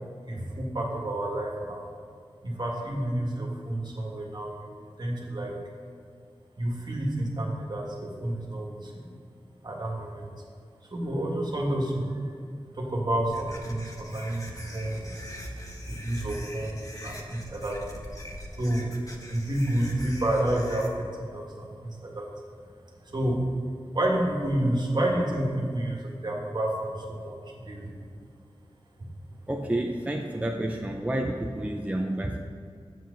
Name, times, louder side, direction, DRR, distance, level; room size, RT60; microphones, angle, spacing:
voice 1, 0.3-1.8 2.4-4.5 5.0-5.5 6.6-8.7 9.6-10.2 10.9-12.1 12.8-14.4 14.7-15.0 16.0-17.8 18.6-18.9 19.3-20.8 21.3-21.5 21.8-22.3 23.1-23.4 23.9-26.0 26.2-26.9 27.2-27.3 27.6-27.9, right 1 dB, 50° right, -1 dB, 1.7 m, -29 dB
sound 1, 13.2-20.9, equal, 35° left, 1.2 m, -41 dB
voice 2, 29.5-32.4, right 1 dB, 15° right, 2 dB, 0.5 m, -29 dB
7.6 x 7.5 x 5.2 m, 2.2 s
wide cardioid pair, 85°, 10 cm